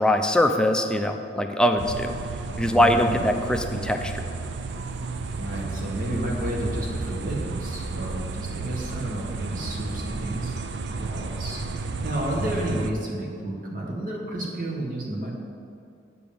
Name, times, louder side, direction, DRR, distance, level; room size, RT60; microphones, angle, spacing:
voice 1, 0.0-2.1 2.6-4.2, left 1 dB, 5° left, 4 dB, 0.6 m, -22 dB
sound 1, 1.8-12.9, right 3 dB, 65° right, 0.5 m, -32 dB
voice 2, 2.7-3.2 5.4-15.3, right 1 dB, 45° right, -2 dB, 1.8 m, -31 dB
8.2 x 7.1 x 7.0 m, 2.4 s
head